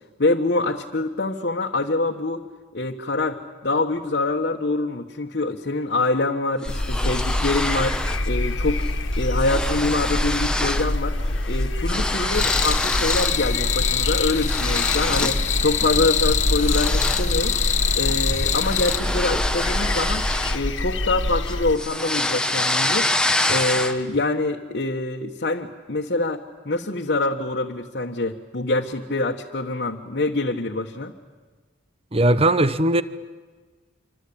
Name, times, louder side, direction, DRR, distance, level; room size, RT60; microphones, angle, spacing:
voice 1, 0.2-2.4 2.7-8.0 8.3-8.8 9.2-11.1 11.4-17.6 18.0-31.1, left 2 dB, 60° left, 1.4 m, -25 dB
sound 1, 6.6-8.3 8.6-8.9 9.1-10.9 11.2-13.4 13.8-15.5 15.9-16.1 16.6-21.1 21.5-24.2, left 1 dB, 5° left, 1.1 m, -26 dB
sound 2, 6.7-21.8, left 1 dB, 80° left, 1.6 m, -26 dB
sound 3, 12.3-19.0, left 9 dB, 40° left, 1.3 m, -25 dB
voice 2, 32.1-33.0, right 1 dB, 30° right, 0.9 m, -18 dB
26.5 x 25.5 x 8.8 m
head